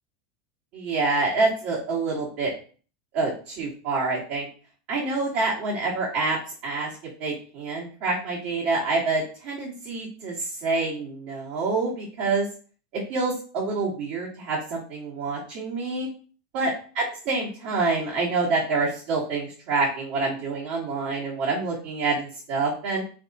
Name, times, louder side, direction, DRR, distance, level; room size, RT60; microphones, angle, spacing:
voice 1, 0.7-2.5 3.1-4.5 4.9-6.4 6.6-6.9 7.2-12.5 12.9-16.1 16.5-16.7 17.3-23.0, right 3 dB, 60° right, -7 dB, 1.6 m, -27 dB
3.4 x 2.5 x 4.0 m, 0.39 s
hypercardioid pair, 110°, 0 cm